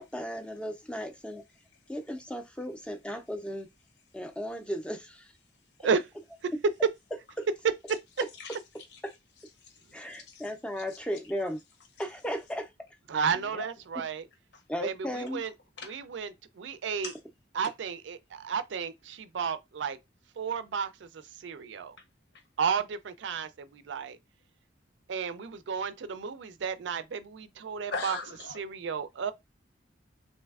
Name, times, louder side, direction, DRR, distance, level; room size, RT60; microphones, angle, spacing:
voice 1, 0.0-1.4 1.9-3.7 4.1-5.3 5.8-5.9 7.4-7.5 9.0-9.1 9.9-11.6 12.0-12.7 13.2-13.3 13.9-14.0 14.7-15.4, equal, 5° left, 0.4 m, -36 dB
voice 2, 10.1-10.5 13.3-13.7 14.5-14.6 15.8-16.0 17.0-17.2 17.6-17.7 27.9-28.6, left 4 dB, 65° left, 0.8 m, -39 dB
voice 3, 13.1-14.2 14.8-15.5 15.8-16.3 16.6-17.1 17.6-20.0 20.4-21.1 21.4-21.9 22.6-24.2 25.1-28.2 28.6-29.3, right 6 dB, 75° right, 0.4 m, -32 dB
3.2 x 2.6 x 2.3 m
head